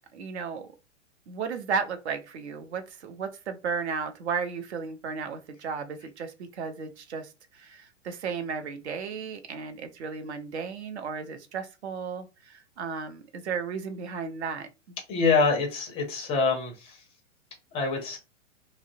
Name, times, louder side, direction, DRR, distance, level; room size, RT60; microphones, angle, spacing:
voice 1, 0.1-0.7 1.3-15.0, right 5 dB, 60° right, 0.6 m, -34 dB
voice 2, 15.1-17.0 17.7-18.2, left 4 dB, 15° left, 0.5 m, -25 dB
2.5 x 2.0 x 2.5 m
figure-of-eight pair, 110°, 38 cm